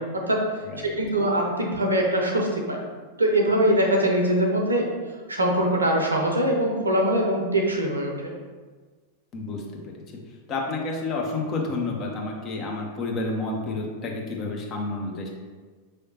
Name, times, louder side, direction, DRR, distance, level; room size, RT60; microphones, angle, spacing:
voice 1, 0.8-2.8 3.2-4.9 5.3-8.3, right 1 dB, 75° right, 1 dB, 0.7 m, -22 dB
voice 2, 9.3-10.0 10.5-15.3, left 3 dB, 35° left, -1 dB, 0.9 m, -30 dB
5.4 x 3.4 x 2.8 m, 1.4 s
figure-of-eight pair, 90°, 0 cm